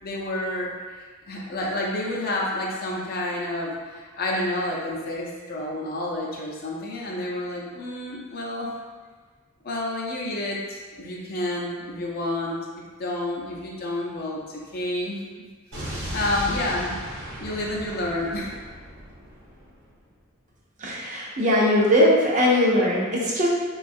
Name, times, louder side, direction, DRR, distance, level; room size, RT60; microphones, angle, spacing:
voice 1, 0.0-0.7 1.3-8.7 9.6-15.2 15.7-17.0 17.4-18.5, left 1 dB, 45° left, -3 dB, 0.5 m, -29 dB
Explosion, 15.7-19.8, equal, 55° right, 0.9 m, -36 dB
voice 2, 20.8-23.5, left 1 dB, 35° right, -4 dB, 0.5 m, -20 dB
3.9 x 2.3 x 2.6 m, 1.4 s
head